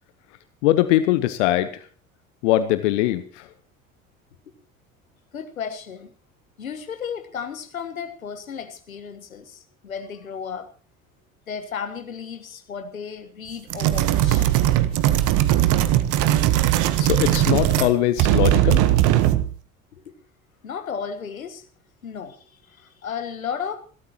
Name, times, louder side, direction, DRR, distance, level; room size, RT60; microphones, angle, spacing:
voice 1, 0.6-1.8 2.4-3.4 17.0-18.8, left 14 dB, 60° left, 12 dB, 1.2 m, -21 dB
voice 2, 5.3-6.1 6.6-10.7 11.5-14.4 19.9-20.0 20.6-21.6 22.0-23.8, left 7 dB, 80° left, 9 dB, 1.5 m, -34 dB
sound 1, 13.7-17.9 18.2-19.5, right 13 dB, 45° right, 1.3 m, -19 dB
27.5 x 13.5 x 3.0 m, 0.40 s
figure-of-eight pair, 65°, 41 cm